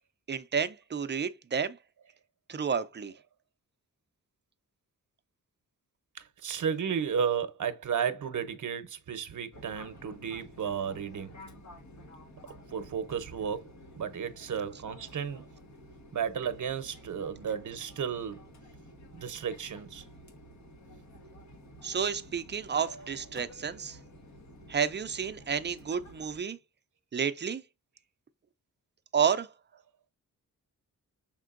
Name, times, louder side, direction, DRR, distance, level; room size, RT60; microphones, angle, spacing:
voice 1, 0.3-1.8 2.5-3.1 21.8-24.0 24.7-26.6 27.1-27.6 29.1-29.5, right 7 dB, 30° right, 0.5 m, -30 dB
voice 2, 6.2-11.3 12.7-13.7 14.0-15.5 16.1-18.4 19.1-20.0, right 7 dB, 60° right, 0.8 m, -33 dB
Fixed-wing aircraft airplane, 9.5-26.4, equal, 55° left, 1.2 m, -51 dB
5.9 x 3.7 x 2.5 m
wide cardioid pair, 105°, 34 cm